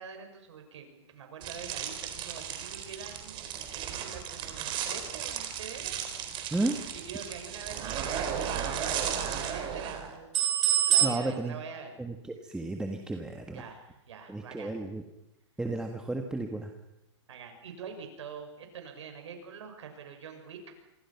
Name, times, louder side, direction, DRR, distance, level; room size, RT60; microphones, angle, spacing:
voice 1, 0.0-6.0 6.9-10.3 10.9-11.9 13.5-14.7 17.3-20.6, right 6 dB, 75° right, 5 dB, 6.4 m, -45 dB
sound 1, 1.4-11.1, right 10 dB, 30° right, 4.3 m, -32 dB
voice 2, 11.0-11.6 12.0-12.1 12.4-13.6 14.3-15.0 15.6-16.7, right 2 dB, 5° right, 4 dB, 1.6 m, -33 dB
27.5 x 23.5 x 5.9 m, 0.89 s
hypercardioid pair, 135°, 15 cm